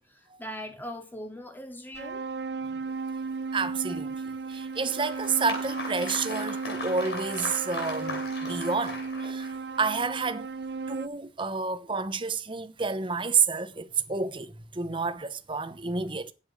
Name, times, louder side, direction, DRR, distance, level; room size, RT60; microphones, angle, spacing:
voice 1, 0.0-2.2, equal, 10° left, 2.4 m, -40 dB
sound 1, 1.9-11.1, right 4 dB, 65° right, 0.7 m, -35 dB
voice 2, 3.5-4.2 4.5-10.5 10.9-16.3, right 5 dB, 30° right, 0.9 m, -30 dB
Applause, 4.5-9.8, left 3 dB, 70° left, 6.2 m, -39 dB
8.5 x 8.0 x 6.3 m
head